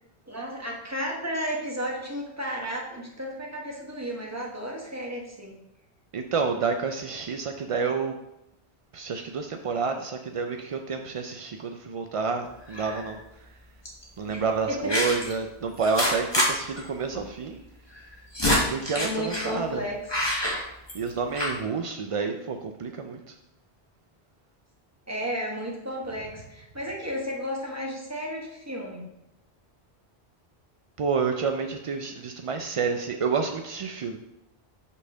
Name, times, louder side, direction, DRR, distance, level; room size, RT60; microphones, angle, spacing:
voice 1, 0.3-5.6 14.3-15.0 18.9-20.0 25.1-29.1, equal, 15° right, -2 dB, 1.3 m, -33 dB
voice 2, 6.1-8.1 8.9-13.5 14.2-17.6 18.5-19.8 20.9-23.3 31.0-34.2, right 5 dB, 55° right, 5 dB, 0.3 m, -29 dB
sound 1, 12.7-13.1 13.8-14.0 14.9-15.3 15.8-16.5 16.8-16.9 17.1-17.2 18.0-19.5 20.1-21.1 21.3-21.6, left 1 dB, 25° left, 1.4 m, -26 dB
5.4 x 4.3 x 6.1 m, 0.86 s
omnidirectional pair, 1.1 m